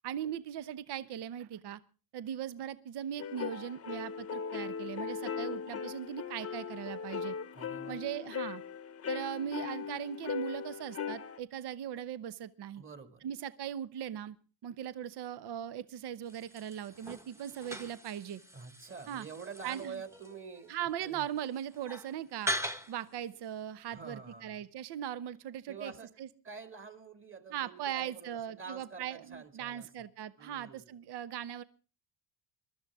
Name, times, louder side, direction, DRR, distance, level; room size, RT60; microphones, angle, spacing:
voice 1, 0.0-1.8 2.1-7.3 7.9-8.6 9.1-12.8 13.2-14.4 14.6-18.4 19.1-19.3 19.6-20.0 20.7-22.5 22.9-25.9 26.2-26.3 27.5-31.6, right 10 dB, 55° right, 14 dB, 1.0 m, -39 dB
sound 1, 3.2-11.4, left 7 dB, 30° left, 1.0 m, -39 dB
voice 2, 7.5-8.0 12.8-13.3 18.5-20.7 21.0-21.2 23.9-24.6 25.7-26.1 26.4-29.9 30.4-30.9, right 5 dB, 25° right, 9 dB, 2.3 m, -47 dB
sound 2, 16.2-23.8, equal, 5° right, 1.3 m, -41 dB
22.5 x 13.0 x 3.6 m, 0.34 s
cardioid pair, 110°, 49 cm